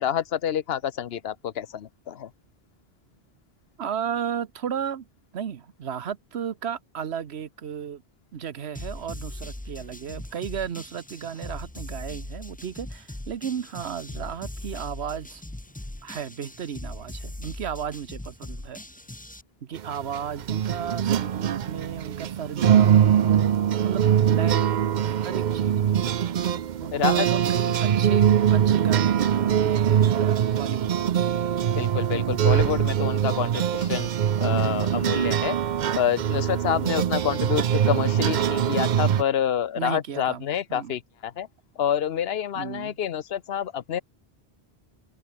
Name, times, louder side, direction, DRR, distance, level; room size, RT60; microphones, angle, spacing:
voice 1, 0.0-2.3 26.4-26.6 26.9-27.3 27.7-27.8 31.8-34.1 34.4-35.6 36.0-41.5 41.8-44.0, left 9 dB, 70° left, 1.0 m, -28 dB
voice 2, 3.8-5.1 5.3-8.0 8.3-15.4 16.0-18.8 19.6-25.7 26.8-28.2 28.5-31.2 36.6-36.9 39.8-40.4 40.7-41.0 42.5-43.0, right 8 dB, 75° right, 1.3 m, -34 dB
sound 1, 8.7-19.4, left 1 dB, 10° left, 0.9 m, -39 dB
sound 2, 19.8-39.2, right 9 dB, 50° right, 0.6 m, -22 dB
open air
omnidirectional pair, 1.1 m